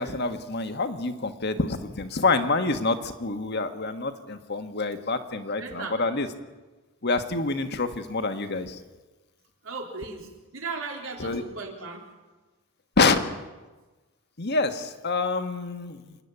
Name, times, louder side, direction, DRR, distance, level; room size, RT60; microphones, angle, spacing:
voice 1, 0.0-6.3 7.0-8.8 11.2-11.4 13.0-13.2 14.4-16.2, left 3 dB, 55° left, 8 dB, 1.5 m, -27 dB
voice 2, 5.5-6.0 9.6-12.1, right 4 dB, 80° right, 1 dB, 4.0 m, -37 dB
27.5 x 9.9 x 9.9 m, 1.2 s
head